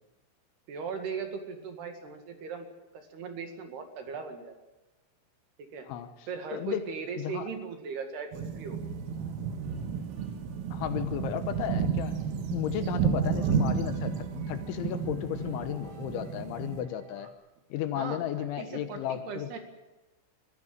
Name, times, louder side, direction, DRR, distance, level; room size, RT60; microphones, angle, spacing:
voice 1, 0.7-2.7 2.9-4.6 5.6-5.9 6.3-8.8 18.0-19.6, right 5 dB, 60° right, 6 dB, 3.6 m, -38 dB
voice 2, 6.5-6.8 7.2-7.5 10.7-12.2 12.5-17.3 17.7-19.5, left 10 dB, 75° left, 10 dB, 3.2 m, -34 dB
sound 1, 8.3-16.8, right 6 dB, 80° right, 4.1 m, -32 dB
sound 2, 8.8-17.3, left 1 dB, 40° right, 2.7 m, -49 dB
22.5 x 14.5 x 9.2 m, 1.1 s
omnidirectional pair, 6.0 m